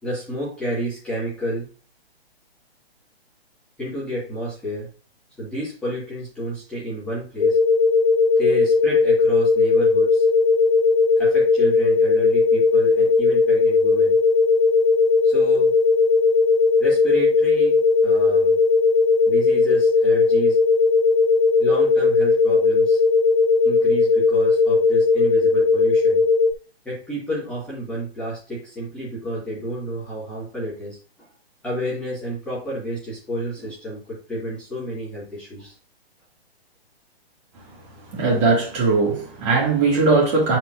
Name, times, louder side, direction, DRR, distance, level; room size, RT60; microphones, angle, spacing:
voice 1, 0.0-1.6 3.8-4.9 5.4-7.6 8.4-10.2 11.2-14.2 15.2-15.7 16.8-18.6 19.2-20.6 21.6-23.0 23.6-26.2 26.8-31.3 31.6-35.7, right 1 dB, 5° left, 1.7 m, -30 dB
sound 1, 7.4-26.5, left 4 dB, 55° left, 0.8 m, -17 dB
voice 2, 38.0-40.6, right 3 dB, 30° right, 2.1 m, -19 dB
9.1 x 4.5 x 2.5 m
hypercardioid pair, 160°, 31 cm